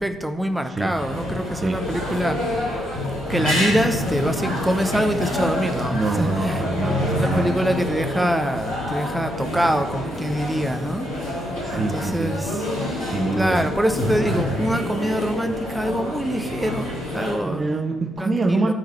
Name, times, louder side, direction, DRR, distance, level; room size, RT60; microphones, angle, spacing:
voice 1, 0.0-2.5 3.3-6.6 7.0-11.1 11.7-12.7 13.3-17.7 18.2-18.7, equal, 5° right, 0.9 m, -24 dB
sound 1, 0.9-17.3, left 1 dB, 80° left, 3.4 m, -27 dB
voice 2, 5.9-7.5 11.6-12.4 12.8-13.7 17.4-18.7, right 3 dB, 35° right, 0.6 m, -25 dB
10.0 x 3.8 x 7.3 m
figure-of-eight pair, 45°, 0 cm